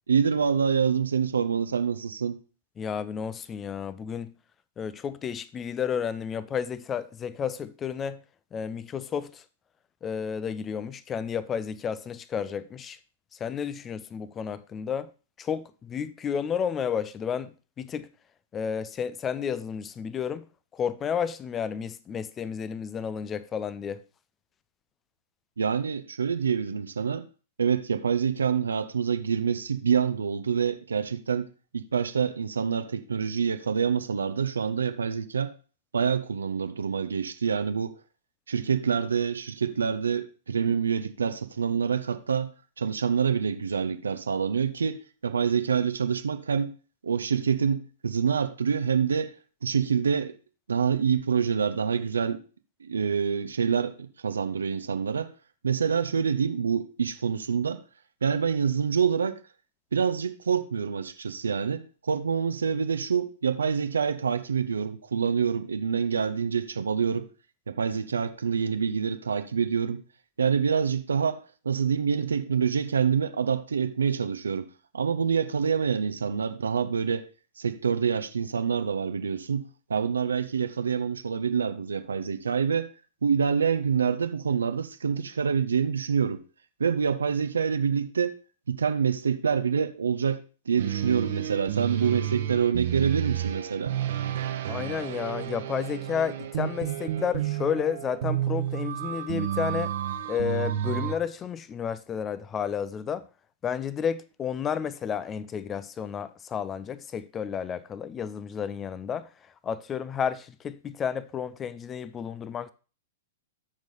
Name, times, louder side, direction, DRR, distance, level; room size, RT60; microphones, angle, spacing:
voice 1, 0.1-2.4 25.6-27.3 27.6-31.5 31.7-35.5 35.9-38.0 38.5-42.5 42.8-46.7 47.0-49.3 49.6-50.3 50.7-52.4 52.8-55.3 55.6-57.8 58.2-59.4 59.9-67.3 67.7-70.0 70.4-71.4 71.6-74.7 74.9-77.3 77.6-79.6 79.9-82.9 83.2-86.4 86.8-88.4 88.7-90.4 90.7-94.0, right 6 dB, 75° right, 0.8 m, -26 dB
voice 2, 2.8-4.3 4.8-8.2 8.5-9.4 10.0-13.0 13.3-15.1 15.4-18.1 18.5-20.5 20.7-24.0 94.7-99.9 100.3-103.3 103.6-112.7, left 7 dB, 20° left, 0.6 m, -31 dB
sound 1, 90.8-101.2, right 11 dB, 60° right, 1.1 m, -31 dB
13.0 x 4.8 x 4.1 m
figure-of-eight pair, 105°, 0 cm